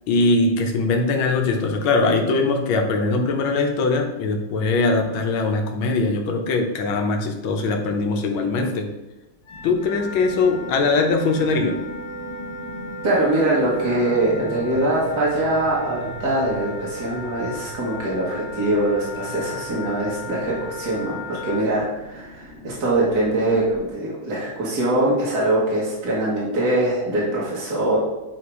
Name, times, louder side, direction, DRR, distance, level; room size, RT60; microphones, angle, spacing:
voice 1, 0.1-8.9 9.6-11.8, left 3 dB, 85° left, 3 dB, 1.7 m, -21 dB
Wind instrument woodwind instrument, 9.4-21.7, left 1 dB, 60° left, 1.3 m, -36 dB
sound 1, 9.5-23.9, left 1 dB, 25° left, 1.3 m, -41 dB
voice 2, 13.0-28.0, right 1 dB, 55° right, -6 dB, 2.1 m, -23 dB
9.4 x 3.4 x 4.8 m, 0.98 s
omnidirectional pair, 2.2 m